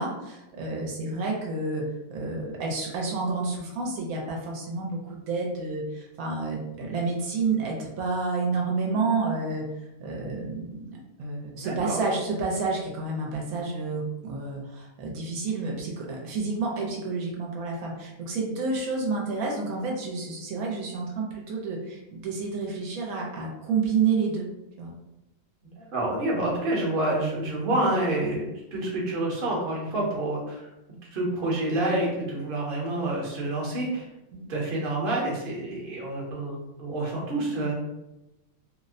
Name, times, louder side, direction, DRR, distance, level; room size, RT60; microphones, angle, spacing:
voice 1, 0.0-1.8 2.1-24.5 24.8-24.9 34.3-34.5, right 4 dB, 80° right, -1 dB, 1.1 m, -29 dB
voice 2, 11.6-12.0 25.8-30.7 31.1-34.1 34.5-37.7, right 1 dB, 45° right, -4 dB, 0.8 m, -28 dB
2.7 x 2.0 x 2.5 m, 0.94 s
omnidirectional pair, 1.5 m